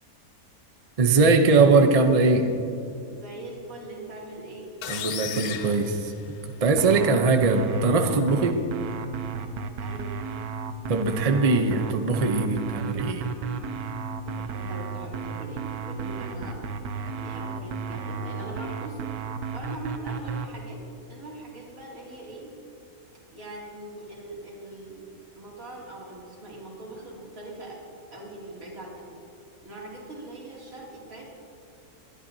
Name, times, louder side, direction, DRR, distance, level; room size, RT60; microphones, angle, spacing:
voice 1, 1.0-2.5 4.9-8.6 10.9-13.3, right 3 dB, 40° right, 5 dB, 0.5 m, -21 dB
voice 2, 3.1-4.7 9.8-10.2 14.2-16.7 17.1-19.1 19.5-22.5 23.3-25.0 25.3-27.8 28.1-29.1 29.6-31.3, right 2 dB, 60° right, -4 dB, 3.1 m, -41 dB
sound 1, 4.8-6.8, left 9 dB, 80° left, 1.1 m, -35 dB
sound 2, 6.8-20.5, right 5 dB, 80° right, 1.2 m, -33 dB
20.0 x 12.0 x 2.7 m, 2.5 s
omnidirectional pair, 1.6 m